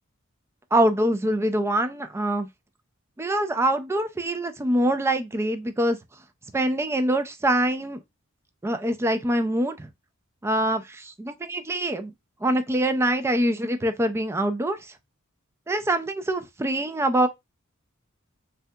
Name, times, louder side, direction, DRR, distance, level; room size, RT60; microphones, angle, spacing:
voice 1, 0.7-2.5 3.2-6.0 6.5-8.0 8.6-9.9 10.4-12.1 12.4-14.9 15.7-17.3, right 1 dB, 10° right, 0.3 m, -24 dB
3.3 x 2.7 x 2.2 m
head